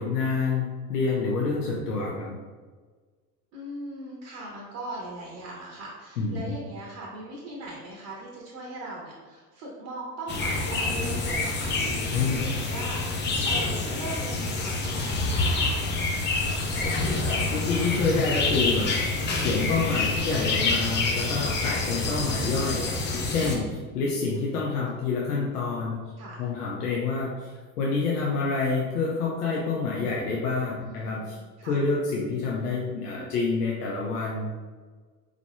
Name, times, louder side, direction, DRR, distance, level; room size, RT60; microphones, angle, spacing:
voice 1, 0.0-2.4 6.2-6.6 12.1-12.6 16.8-22.9 23.2-26.0 26.4-34.5, left 4 dB, 65° left, -3 dB, 0.8 m, -28 dB
voice 2, 3.5-15.9 24.4-24.8 26.2-26.4 30.8-31.8, right 2 dB, 35° right, -3 dB, 1.0 m, -40 dB
sound 1, 10.3-23.6, left 3 dB, 20° left, 0.7 m, -27 dB
4.7 x 3.7 x 2.2 m, 1.4 s
figure-of-eight pair, 75°, 50 cm